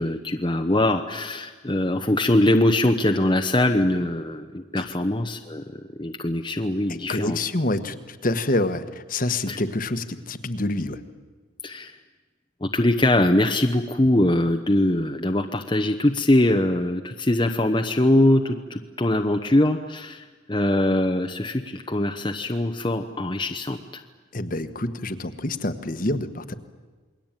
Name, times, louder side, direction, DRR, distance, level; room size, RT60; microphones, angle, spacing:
voice 1, 0.0-7.4 9.5-9.6 11.6-11.9 12.6-24.0, left 1 dB, 25° left, 4 dB, 0.9 m, -22 dB
voice 2, 7.1-8.8 9.1-11.0 24.3-26.5, left 2 dB, 40° left, 10 dB, 1.4 m, -27 dB
28.5 x 22.0 x 9.0 m, 1.4 s
head